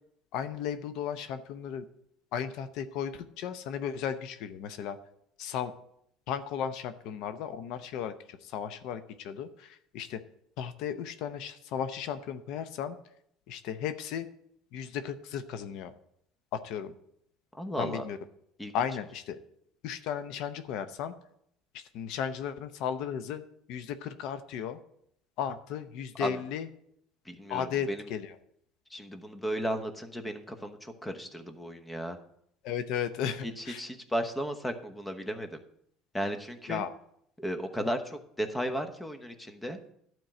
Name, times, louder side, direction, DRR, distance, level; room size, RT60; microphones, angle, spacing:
voice 1, 0.3-1.8 2.3-5.0 5.4-5.7 6.3-10.2 10.6-13.0 13.5-14.3 14.7-15.9 16.5-16.9 17.8-18.2 18.7-19.4 19.8-21.1 21.7-23.4 23.7-24.8 25.4-26.7 27.5-28.3 32.6-33.8 36.7-36.9, left 8 dB, 70° left, 10 dB, 0.7 m, -35 dB
voice 2, 17.5-18.0 18.6-18.7 26.2-26.3 27.3-28.1 28.9-32.2 33.4-35.6 36.1-36.8 37.4-39.8, equal, 10° left, 8 dB, 1.0 m, -35 dB
11.5 x 4.6 x 7.6 m, 0.72 s
cardioid pair, 115°, 0 cm